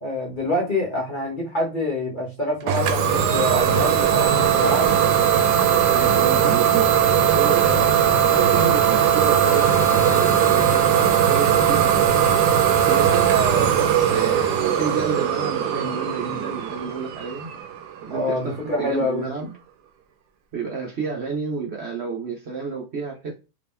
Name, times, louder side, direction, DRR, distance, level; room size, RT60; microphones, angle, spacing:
voice 1, 0.0-4.9 18.1-19.3, left 1 dB, 35° left, 0.9 m, -26 dB
Idling / Domestic sounds home sounds, 2.7-18.2, right 9 dB, 90° right, 1.2 m, -19 dB
voice 2, 5.9-12.1 12.8-17.5 18.0-19.5 20.5-23.3, right 5 dB, 50° right, 0.9 m, -31 dB
2.9 x 2.8 x 3.5 m
omnidirectional pair, 1.7 m